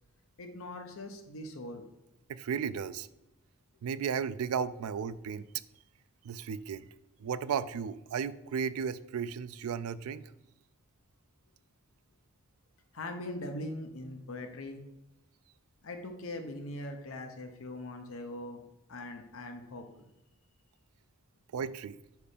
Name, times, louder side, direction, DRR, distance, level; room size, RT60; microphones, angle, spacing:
voice 1, 0.4-1.8 12.9-14.8 15.8-18.6 18.9-19.8, left 1 dB, 70° left, 5 dB, 0.8 m, -41 dB
voice 2, 2.3-3.1 3.8-5.5 6.2-6.9 7.2-10.3 21.5-22.0, right 7 dB, 80° right, 15 dB, 0.3 m, -34 dB
5.4 x 4.6 x 5.0 m, 0.93 s
head